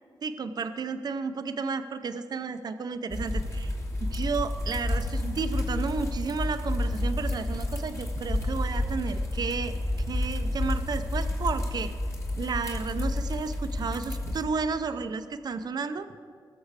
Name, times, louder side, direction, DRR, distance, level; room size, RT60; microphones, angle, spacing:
voice 1, 0.2-3.8 4.0-11.9 12.4-16.1, right 5 dB, 55° right, 9 dB, 0.7 m, -32 dB
sound 1, 3.1-14.4, left 1 dB, 35° left, 2.4 m, -30 dB
20.0 x 7.0 x 4.9 m, 2.2 s
wide cardioid pair, 125°, 8 cm